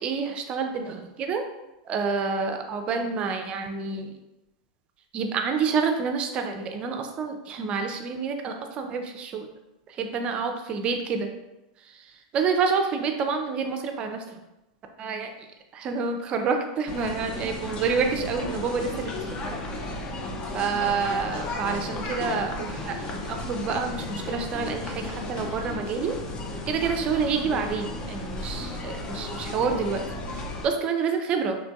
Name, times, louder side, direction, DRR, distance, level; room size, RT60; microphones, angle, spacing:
voice 1, 0.0-1.4 1.9-4.1 5.1-9.5 9.9-11.3 11.9-12.0 12.3-14.4 15.0-15.5 15.7-19.6 20.5-26.2 26.7-30.0 30.6-31.6, right 5 dB, 35° right, 5 dB, 0.4 m, -28 dB
sound 1, 16.9-30.7, left 2 dB, 35° left, 0.5 m, -34 dB
3.0 x 2.5 x 2.3 m, 0.97 s
hypercardioid pair, 100°, 3 cm